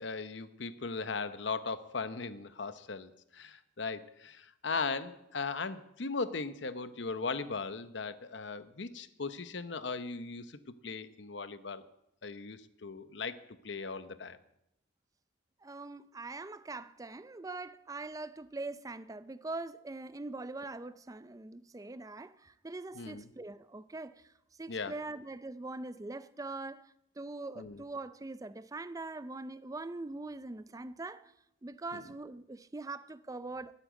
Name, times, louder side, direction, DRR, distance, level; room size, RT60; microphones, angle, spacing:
voice 1, 0.0-11.8 12.2-14.4 22.9-23.3 24.7-24.9 27.6-27.8 31.9-32.0, left 4 dB, 65° left, 0.9 m, -38 dB
voice 2, 15.6-24.3 24.6-31.3 31.6-33.7, right 2 dB, 20° right, 0.5 m, -42 dB
13.0 x 9.8 x 8.3 m
head